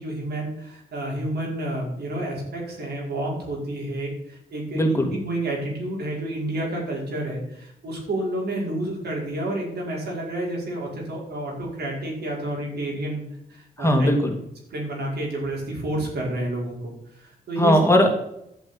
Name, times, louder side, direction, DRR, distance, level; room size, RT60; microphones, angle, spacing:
voice 1, 0.0-14.1 14.7-17.8, right 1 dB, 80° right, -2 dB, 5.3 m, -30 dB
voice 2, 4.7-5.1 13.8-14.4 17.6-18.1, equal, 15° left, 3 dB, 2.5 m, -18 dB
11.5 x 6.5 x 8.9 m, 0.80 s
cardioid pair, 85°, 17 cm